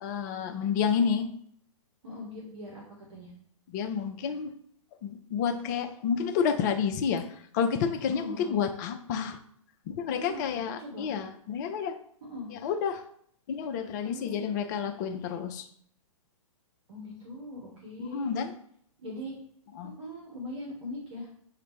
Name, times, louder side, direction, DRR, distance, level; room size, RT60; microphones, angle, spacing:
voice 1, 0.0-1.3 3.7-4.5 5.0-7.3 7.5-9.4 9.9-12.0 12.5-13.0 13.5-15.7 18.0-18.5 19.8-19.9, left 7 dB, 30° left, 6 dB, 0.5 m, -30 dB
voice 2, 2.0-3.3 8.1-8.6 10.1-11.1 12.2-12.5 14.0-14.7 16.9-18.3 19.0-19.3 20.0-21.3, left 1 dB, 55° right, -2 dB, 1.3 m, -41 dB
7.0 x 2.5 x 3.1 m, 0.65 s
figure-of-eight pair, 120°, 18 cm